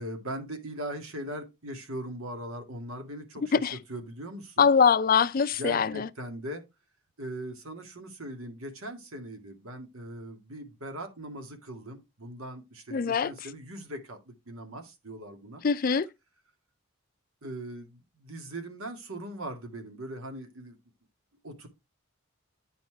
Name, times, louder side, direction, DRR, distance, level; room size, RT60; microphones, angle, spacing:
voice 1, 0.0-4.7 5.5-6.6 7.2-15.6 17.4-20.8 21.4-21.7, right 1 dB, 90° right, 2.1 m, -40 dB
voice 2, 4.6-6.1 12.9-13.3 15.6-16.1, left 6 dB, 40° left, 0.4 m, -23 dB
9.5 x 4.5 x 4.6 m
head